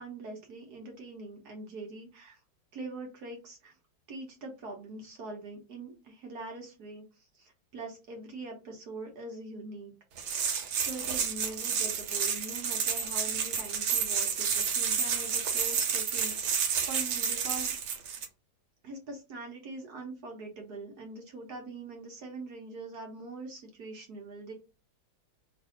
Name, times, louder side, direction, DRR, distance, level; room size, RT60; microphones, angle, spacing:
voice 1, 0.0-2.4 2.7-3.7 4.1-7.0 7.3-9.9 10.2-18.1 18.8-24.5, right 3 dB, 55° right, 1 dB, 1.3 m, -43 dB
sound 1, 10.2-18.3, right 7 dB, 80° right, 1.6 m, -30 dB
3.3 x 2.6 x 3.8 m, 0.29 s
omnidirectional pair, 2.3 m